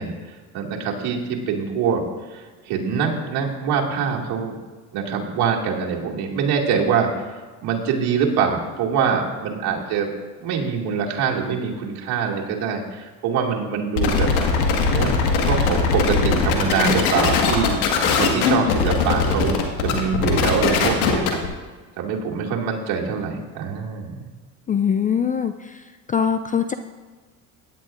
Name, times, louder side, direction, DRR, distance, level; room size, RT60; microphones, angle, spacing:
voice 1, 0.0-2.1 2.3-4.6 4.9-7.1 7.6-10.1 10.4-14.3 14.9-15.2 15.4-21.4 22.0-24.2, right 6 dB, 65° right, -2 dB, 2.4 m, -24 dB
sound 1, 14.0-21.5, left 5 dB, 85° left, 1.8 m, -20 dB
voice 2, 24.7-25.8 26.1-26.7, left 7 dB, 20° left, 8 dB, 0.3 m, -22 dB
16.5 x 10.5 x 2.5 m, 1.3 s
supercardioid pair, 90°, 41 cm